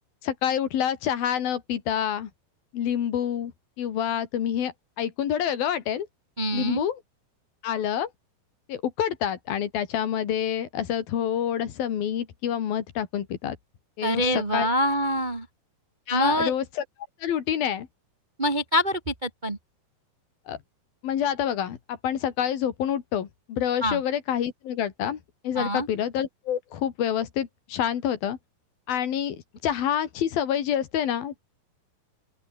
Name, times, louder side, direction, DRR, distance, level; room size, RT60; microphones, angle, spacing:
voice 1, 0.2-2.3 2.7-3.5 3.8-6.1 6.5-7.0 7.6-8.1 8.7-13.6 14.0-14.7 16.1-16.8 17.2-17.9 20.5-20.6 21.0-25.2 25.4-28.4 28.9-31.4, left 9 dB, 65° left, 3.9 m, -27 dB
voice 2, 6.4-6.8 14.0-15.5 16.1-16.5 18.4-19.6 23.8-24.0 25.5-25.9, equal, 70° right, 0.4 m, -25 dB
open air
omnidirectional pair, 4.5 m